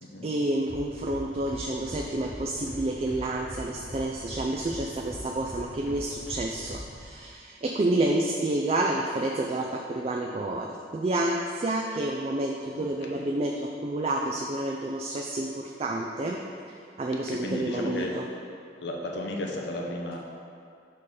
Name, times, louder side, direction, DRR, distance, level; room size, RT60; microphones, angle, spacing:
voice 1, 0.2-16.4 17.0-18.3, right 2 dB, 35° right, 0 dB, 0.3 m, -29 dB
sound 1, 0.7-7.0, equal, 15° right, 1.3 m, -41 dB
voice 2, 12.8-13.3 17.3-18.2 18.8-20.2, left 1 dB, 85° left, 0 dB, 0.8 m, -34 dB
5.6 x 4.5 x 4.8 m, 2.3 s
head